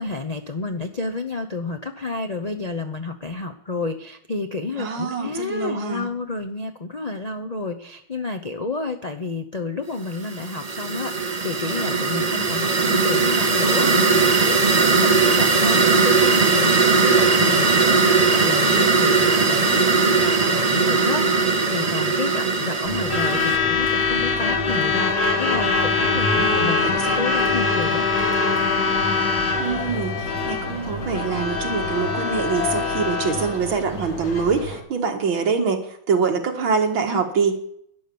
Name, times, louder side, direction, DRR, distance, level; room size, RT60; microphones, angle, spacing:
voice 1, 0.0-28.0, left 3 dB, 80° left, 4 dB, 0.3 m, -30 dB
voice 2, 4.8-6.1 26.3-27.2 29.6-37.6, right 5 dB, 85° right, 4 dB, 2.5 m, -25 dB
sound 1, 10.2-23.6, right 4 dB, 30° right, 0.7 m, -19 dB
Truck / Alarm, 22.9-34.8, left 4 dB, 55° left, 2.5 m, -23 dB
12.0 x 9.7 x 7.0 m, 0.69 s
omnidirectional pair, 2.1 m